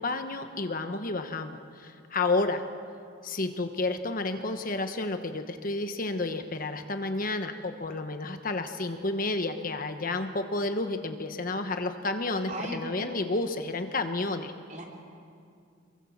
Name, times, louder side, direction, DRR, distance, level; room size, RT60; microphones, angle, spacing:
voice 1, 0.0-2.6 3.2-14.5, left 2 dB, 45° left, 7 dB, 1.2 m, -31 dB
voice 2, 12.5-13.1 14.7-14.8, right 1 dB, 40° right, -1 dB, 4.1 m, -37 dB
27.5 x 23.0 x 7.3 m, 2.4 s
head